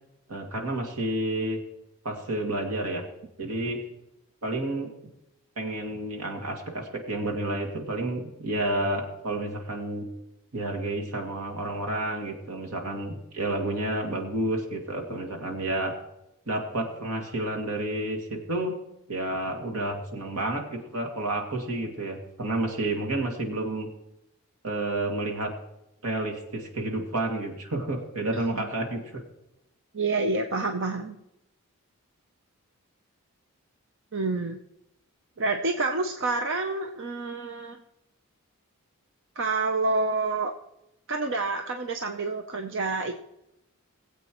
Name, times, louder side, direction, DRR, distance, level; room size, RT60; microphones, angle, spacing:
voice 1, 0.3-1.6 2.0-3.1 3.4-3.8 4.4-4.9 5.6-10.1 10.5-15.9 16.5-18.8 19.1-23.9 24.6-25.5 26.0-29.2, right 1 dB, 80° right, 2 dB, 2.3 m, -30 dB
voice 2, 29.9-31.2 34.1-34.6 35.4-37.8 39.4-40.5 41.1-43.1, right 3 dB, 55° right, 5 dB, 0.7 m, -28 dB
20.0 x 8.2 x 3.1 m, 0.88 s
head